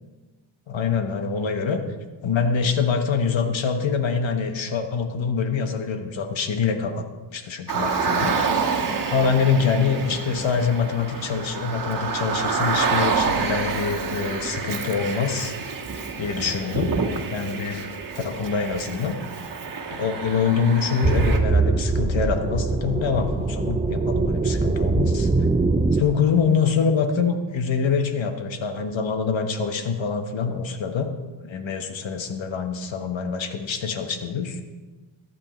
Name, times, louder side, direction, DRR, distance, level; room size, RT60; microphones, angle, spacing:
voice 1, 0.7-1.8 2.2-8.5 9.1-15.5 16.2-17.0 17.3-17.9 18.2-19.2 19.9-25.3 25.9-31.1 31.4-34.6, left 5 dB, 70° left, 6 dB, 1.3 m, -25 dB
Car, 7.7-21.4, right 5 dB, 40° right, 1.6 m, -28 dB
sound 1, 21.0-26.0, right 3 dB, 15° right, 0.5 m, -22 dB
15.0 x 11.0 x 3.1 m, 1.3 s
cardioid pair, 85°, 47 cm